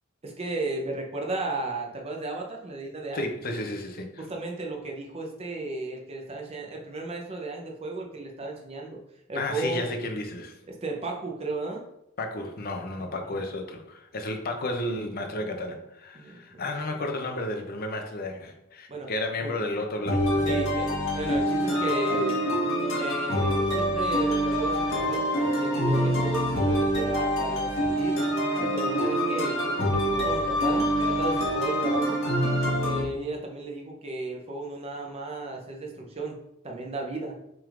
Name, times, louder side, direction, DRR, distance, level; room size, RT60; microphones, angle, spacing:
voice 1, 0.2-3.3 4.2-9.0 9.3-9.9 10.7-11.8 13.3-13.4 16.1-16.6 18.9-19.1 19.4-19.6 20.4-20.9 21.1-22.4 23.0-28.2 28.7-32.2 32.8-36.4 36.6-37.3, right 2 dB, 30° right, 1 dB, 0.6 m, -34 dB
voice 2, 3.1-4.2 9.3-10.6 12.2-20.7, left 2 dB, 45° left, 4 dB, 0.6 m, -32 dB
sound 1, 20.0-33.0, equal, 65° left, 1.4 m, -25 dB
5.9 x 3.5 x 2.5 m, 0.84 s
head